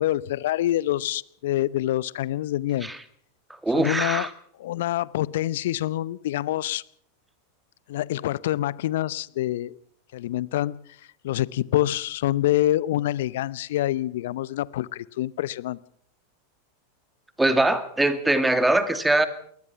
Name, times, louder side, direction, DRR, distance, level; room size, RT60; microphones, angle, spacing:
voice 1, 0.0-2.9 3.7-4.3 4.6-6.8 7.9-9.8 10.1-10.8 11.2-15.8, left 14 dB, 65° left, 21 dB, 0.7 m, -26 dB
voice 2, 3.6-4.3 17.4-19.3, right 2 dB, 5° right, 11 dB, 2.3 m, -22 dB
22.5 x 19.5 x 5.8 m, 0.66 s
hypercardioid pair, 90°, 0 cm